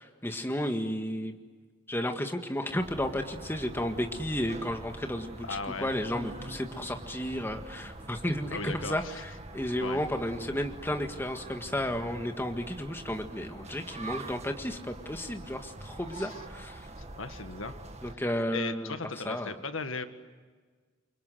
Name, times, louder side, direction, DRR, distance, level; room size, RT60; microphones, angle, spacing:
voice 1, 0.0-1.4 1.9-16.9 18.0-18.9 19.2-19.5, left 1 dB, 10° left, 5 dB, 1.8 m, -33 dB
sound 1, 2.8-18.2, right 2 dB, 35° right, 1.9 m, -45 dB
voice 2, 5.4-5.9 8.5-9.2 9.8-10.0 16.1-16.4 17.0-17.8 18.1-18.2 18.5-20.0, left 4 dB, 85° left, 8 dB, 1.8 m, -37 dB
29.0 x 25.0 x 7.8 m, 1.5 s
head